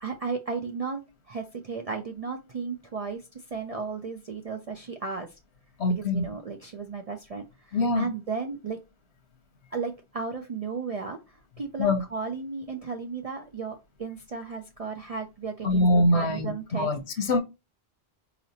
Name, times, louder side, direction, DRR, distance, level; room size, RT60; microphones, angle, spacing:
voice 1, 0.0-3.2 3.5-5.3 5.9-8.8 9.7-16.9 17.1-17.3, right 4 dB, 50° right, 0.5 m, -35 dB
voice 2, 5.8-6.3 7.7-8.1 11.8-12.0 15.6-17.4, left 1 dB, 85° left, 1.1 m, -24 dB
4.2 x 3.0 x 2.7 m
omnidirectional pair, 1.1 m